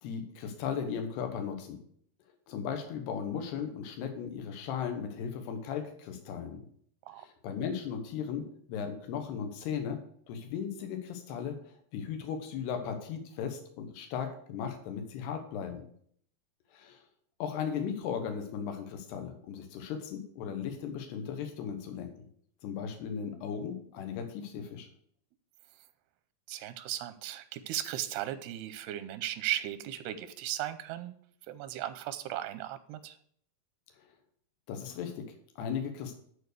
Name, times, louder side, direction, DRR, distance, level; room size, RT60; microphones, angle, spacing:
voice 1, 0.0-1.8 2.5-6.6 7.2-10.0 10.3-15.8 16.7-17.0 17.4-22.3 22.6-24.9 34.0-34.1 34.7-36.2, left 7 dB, 85° left, 5 dB, 3.2 m, -37 dB
voice 2, 26.5-31.1 31.5-33.2, right 13 dB, 90° right, 13 dB, 2.6 m, -36 dB
12.0 x 4.6 x 6.7 m, 0.63 s
omnidirectional pair, 4.6 m